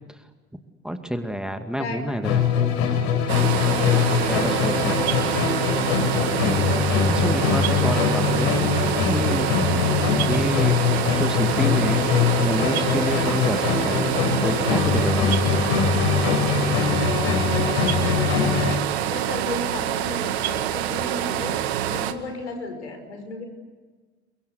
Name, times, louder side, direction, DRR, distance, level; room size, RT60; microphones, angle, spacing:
voice 1, 0.8-2.4 3.6-5.0 7.0-8.5 9.0-9.8 10.2-10.8 11.2-15.3, right 1 dB, ahead, 8 dB, 2.2 m, -29 dB
voice 2, 1.7-2.1 2.3-2.4 4.8-5.0 5.8-6.2 17.7-17.9 18.2-18.3 19.0-23.4, left 2 dB, 75° left, 5 dB, 5.8 m, -34 dB
Musical instrument, 2.2-18.9, left 6 dB, 55° left, 4.5 m, -22 dB
sound 1, 3.3-22.1, right 12 dB, 65° right, 1.8 m, -26 dB
30.0 x 23.0 x 8.1 m, 1.4 s
figure-of-eight pair, 70°, 34 cm